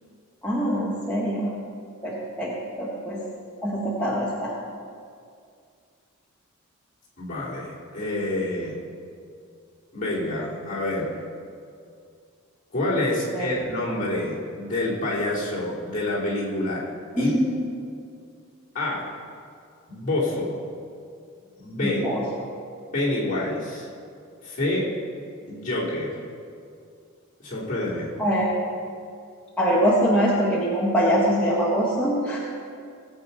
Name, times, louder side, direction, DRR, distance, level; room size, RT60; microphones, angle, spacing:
voice 1, 0.4-1.5 2.0-3.2 3.6-4.5 13.3-13.5 17.1-17.5 21.8-22.2 28.2-28.4 29.6-32.4, equal, 5° left, -7 dB, 1.5 m, -23 dB
voice 2, 7.2-8.8 9.9-11.1 12.7-16.8 17.2-17.3 18.7-19.1 19.9-20.6 21.6-22.0 22.9-23.9 24.4-24.9 25.5-26.2 27.4-28.1, left 1 dB, 35° left, -7 dB, 3.5 m, -27 dB
18.5 x 8.2 x 5.6 m, 2.3 s
head